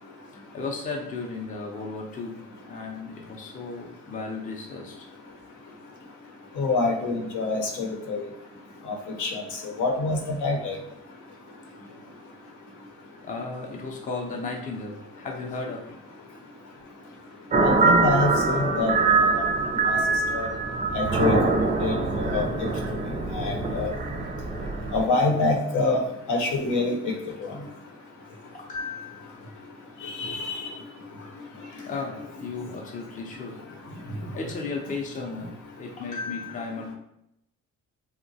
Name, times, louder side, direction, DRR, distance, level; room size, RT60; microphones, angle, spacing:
voice 1, 0.3-2.4 2.7-5.1 8.8-9.0 13.2-15.8 28.5-29.3 31.8-33.6 34.3-35.5 35.8-36.9, left 3 dB, 25° left, 1 dB, 0.5 m, -35 dB
voice 2, 6.6-8.2 8.9-9.4 9.8-10.7 17.6-19.5 19.8-20.0 20.3-20.5 20.9-22.5 23.3-23.9 24.9-26.0 26.3-27.1 27.4-27.5 30.0-30.7, left 3 dB, 75° left, 1 dB, 0.7 m, -26 dB
sound 1, 17.5-25.1, right 3 dB, 25° right, 0.4 m, -24 dB
2.9 x 2.1 x 2.7 m, 0.80 s
cardioid pair, 90°, 30 cm